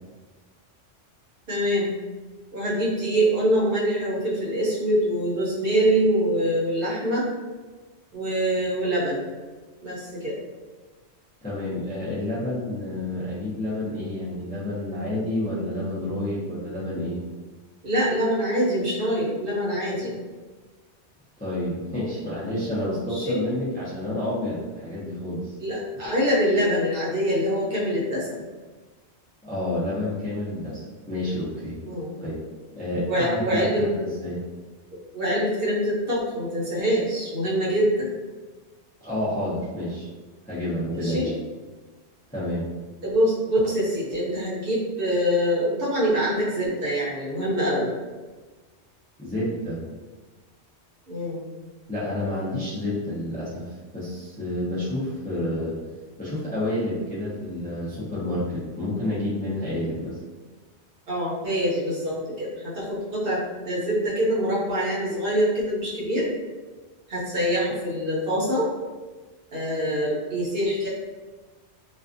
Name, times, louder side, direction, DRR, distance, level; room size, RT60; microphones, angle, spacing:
voice 1, 1.5-1.9 2.5-7.3 8.1-9.2 9.8-10.3 17.8-20.1 22.9-23.4 25.6-28.4 31.8-32.1 33.1-33.9 35.1-38.1 40.9-41.3 43.0-47.9 51.1-51.4 61.1-66.3 67.1-68.7 69.5-70.9, equal, 60° right, -6 dB, 0.8 m, -24 dB
voice 2, 11.4-17.2 21.4-25.5 29.4-30.8 31.1-31.8 32.2-32.4 32.7-34.4 39.0-40.1 40.4-41.3 42.3-42.7 49.2-49.8 51.9-55.7 56.2-60.2, left 1 dB, 10° left, -9 dB, 0.5 m, -29 dB
2.4 x 2.3 x 2.4 m, 1.3 s
omnidirectional pair, 1.2 m